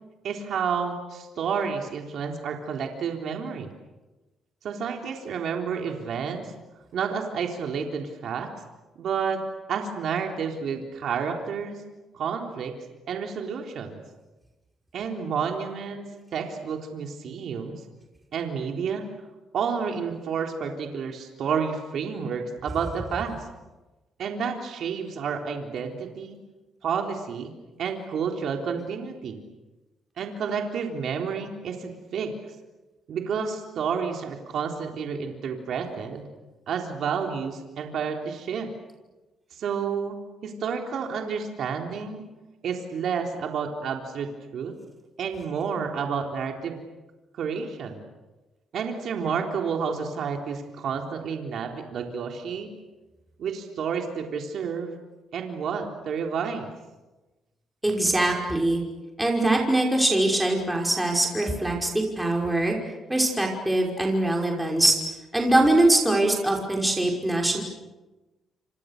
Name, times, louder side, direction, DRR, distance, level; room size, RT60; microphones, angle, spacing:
voice 1, 0.2-3.7 4.6-6.5 6.9-8.5 9.0-9.4 9.7-11.8 12.1-12.7 13.1-14.0 14.9-16.1 16.3-17.8 18.3-19.1 19.5-23.5 24.2-26.4 26.8-27.5 27.8-29.4 30.2-32.3 33.1-36.3 36.7-38.7 39.6-40.2 40.4-42.2 42.6-44.7 45.2-46.8 47.4-48.0 48.7-52.7 53.4-54.9 55.3-56.7, right 6 dB, 65° right, 2 dB, 3.8 m, -30 dB
voice 2, 57.8-58.8 59.2-62.7 63.1-65.0 65.3-67.6, right 1 dB, 10° right, 0 dB, 5.6 m, -22 dB
29.5 x 27.0 x 6.8 m, 1.1 s
cardioid pair, 90°, 0 cm